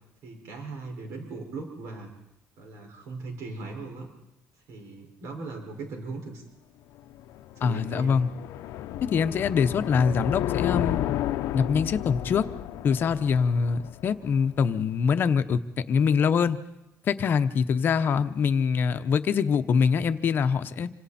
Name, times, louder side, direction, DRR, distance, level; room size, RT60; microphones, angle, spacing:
voice 1, 0.2-2.1 2.6-4.1 4.7-6.4 7.6-8.2, right 3 dB, 70° right, 2 dB, 5.4 m, -39 dB
sound 1, 7.0-14.3, left 13 dB, 75° left, 0.8 m, -32 dB
voice 2, 7.6-8.3 9.0-11.0 11.5-12.4 12.8-15.6 15.9-16.6 17.1-20.9, left 6 dB, 40° left, 10 dB, 0.9 m, -24 dB
27.0 x 25.5 x 4.3 m, 0.93 s
cardioid pair, 160°, 5 cm